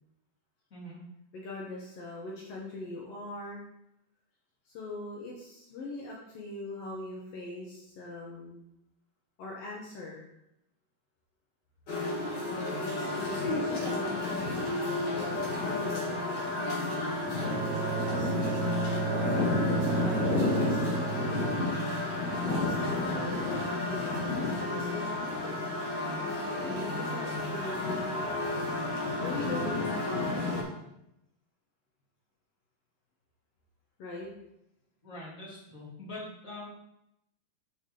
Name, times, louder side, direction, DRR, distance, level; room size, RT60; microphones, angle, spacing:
voice 1, 1.3-3.6 4.6-8.6 9.4-10.3 12.4-16.3 17.4-19.3 19.8-21.1 22.6-25.2 26.4-28.5 29.2-30.7 34.0-34.3, left 2 dB, 75° left, -3 dB, 1.4 m, -41 dB
sound 1, 11.9-30.6, left 2 dB, 45° left, 1.4 m, -31 dB
Bowed string instrument, 17.4-22.4, right 10 dB, 90° right, 2.5 m, -34 dB
voice 2, 35.0-36.6, left 1 dB, 25° left, -5 dB, 2.6 m, -44 dB
8.6 x 5.7 x 3.8 m, 0.83 s
omnidirectional pair, 4.5 m